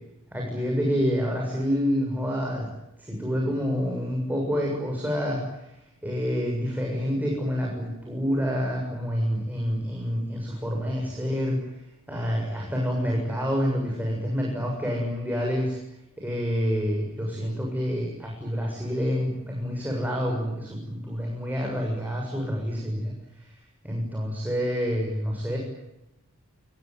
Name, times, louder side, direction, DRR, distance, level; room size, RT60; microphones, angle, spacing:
voice 1, 0.3-2.7 3.0-5.7 6.0-11.6 12.1-15.8 16.2-23.6 23.8-25.6, equal, 10° right, -1 dB, 7.2 m, -28 dB
28.5 x 20.0 x 9.6 m, 0.89 s
head